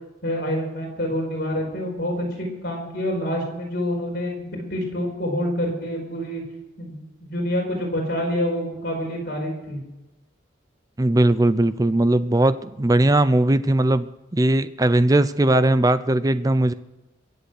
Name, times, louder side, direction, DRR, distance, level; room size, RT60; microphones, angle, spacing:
voice 1, 0.2-6.4 6.8-9.8, equal, 50° left, 0 dB, 4.9 m, -27 dB
voice 2, 11.0-14.1 14.3-16.7, right 1 dB, 20° right, 14 dB, 0.5 m, -19 dB
23.0 x 8.1 x 6.5 m, 1.0 s
head